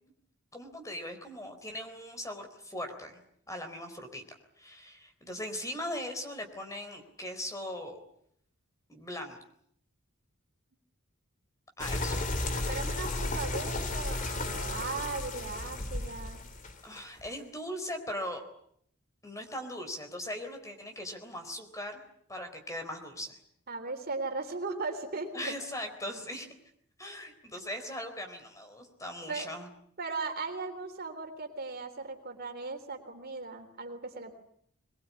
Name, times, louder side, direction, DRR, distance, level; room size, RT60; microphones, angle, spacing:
voice 1, 0.5-4.2 4.6-8.0 8.9-9.4 11.8-12.3 16.8-18.4 19.2-22.0 22.3-23.3 25.3-26.5 27.0-29.7, left 1 dB, 15° left, 6 dB, 4.0 m, -39 dB
sound 1, 11.8-17.3, left 2 dB, 35° left, 2.6 m, -34 dB
voice 2, 12.7-16.4 23.7-25.5 29.3-29.5 30.0-34.4, right 3 dB, 45° right, 5 dB, 3.5 m, -37 dB
22.5 x 22.0 x 9.6 m, 0.69 s
head